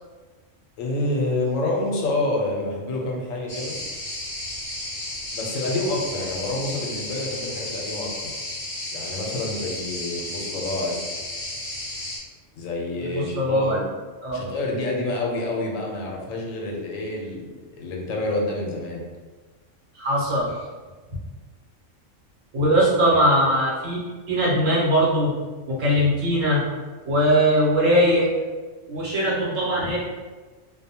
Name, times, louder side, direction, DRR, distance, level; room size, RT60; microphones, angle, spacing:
voice 1, 0.8-3.8 5.3-8.3 8.9-11.0 12.6-13.8 14.3-17.5 17.8-19.1 22.5-22.7 23.1-23.2, left 2 dB, 85° left, -1 dB, 1.0 m, -28 dB
sound 1, 3.5-12.2, left 1 dB, 45° left, 0.5 m, -33 dB
voice 2, 13.0-13.8 14.2-14.5 19.9-20.6 21.1-21.2 22.5-24.0 24.3-25.3 25.7-26.6 27.0-28.3 28.9-30.0, equal, 75° right, -6 dB, 1.2 m, -20 dB
2.7 x 2.1 x 2.7 m, 1.3 s
omnidirectional pair, 1.3 m